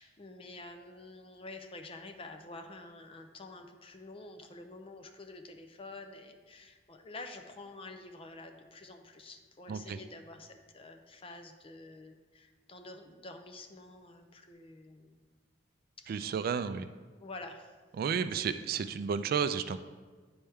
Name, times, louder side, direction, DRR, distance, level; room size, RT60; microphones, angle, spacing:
voice 1, 0.0-15.2 16.0-16.8 17.2-17.7 18.2-18.8, left 2 dB, 30° left, 6 dB, 0.6 m, -49 dB
voice 2, 16.1-16.9 18.0-19.8, right 6 dB, 55° right, 11 dB, 0.3 m, -32 dB
10.0 x 4.3 x 3.5 m, 1.4 s
head